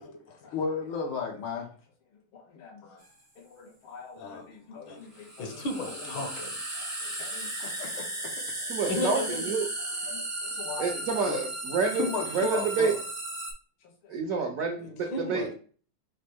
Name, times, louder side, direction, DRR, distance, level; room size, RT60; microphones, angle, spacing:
voice 1, 0.0-1.7 2.1-3.0 3.4-5.6 5.9-6.1 6.7-8.7 9.8-11.4 11.9-13.0 14.0-14.5 15.3-15.5, left 4 dB, 90° left, 1 dB, 1.9 m, -37 dB
sound 1, 3.0-3.1 5.1-13.5, right 2 dB, 20° right, 0.4 m, -35 dB
voice 2, 4.2-4.5 4.9-6.7 8.9-9.5 15.1-15.5, left 2 dB, 70° left, 4 dB, 1.5 m, -35 dB
voice 3, 8.7-9.7 10.8-12.1 12.3-12.9 14.1-15.5, right 5 dB, 75° right, 3 dB, 0.8 m, -28 dB
5.1 x 2.1 x 4.4 m, 0.42 s
omnidirectional pair, 2.2 m